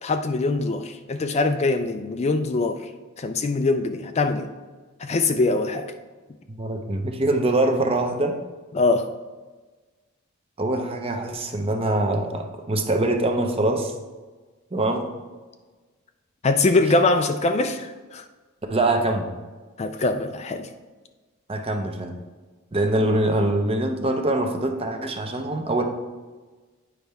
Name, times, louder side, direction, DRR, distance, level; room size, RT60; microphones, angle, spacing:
voice 1, 0.0-2.9 3.2-4.5 5.0-5.9 8.7-9.1 16.4-18.2 19.8-20.7, left 3 dB, 30° left, 7 dB, 0.4 m, -23 dB
voice 2, 6.5-8.4 10.6-13.9 14.7-15.0 18.7-19.3 21.5-22.2 22.7-25.8, right 2 dB, 25° right, 4 dB, 0.7 m, -23 dB
9.1 x 5.4 x 3.4 m, 1.3 s
head